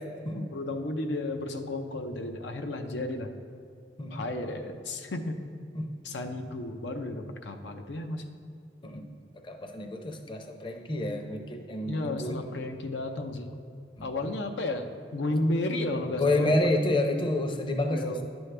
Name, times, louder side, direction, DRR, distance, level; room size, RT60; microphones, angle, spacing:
voice 1, 0.3-3.3 4.1-5.4 6.0-8.3 11.9-13.5 14.0-16.5 17.8-18.2, left 2 dB, 80° left, 5 dB, 0.6 m, -33 dB
voice 2, 9.4-12.4 14.0-14.3 16.2-18.2, left 2 dB, 30° left, 5 dB, 0.6 m, -29 dB
10.5 x 6.2 x 3.3 m, 2.4 s
head